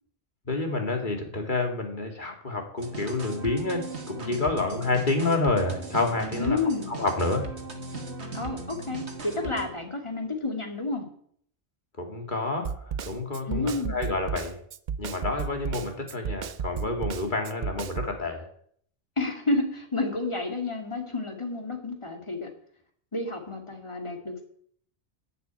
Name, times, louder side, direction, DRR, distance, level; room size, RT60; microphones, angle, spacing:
voice 1, 0.5-6.6 6.9-7.5 12.0-14.6 15.0-18.5, left 3 dB, 45° left, 3 dB, 2.3 m, -29 dB
sound 1, 2.8-9.7, right 3 dB, 85° right, 2.0 m, -38 dB
voice 2, 6.4-6.9 8.3-11.1 13.5-14.1 19.2-22.5 23.1-24.4, left 3 dB, 25° left, 3 dB, 2.4 m, -30 dB
Snare drum, 12.6-18.2, right 6 dB, 50° right, 0.7 m, -33 dB
11.5 x 6.7 x 8.9 m, 0.62 s
omnidirectional pair, 1.1 m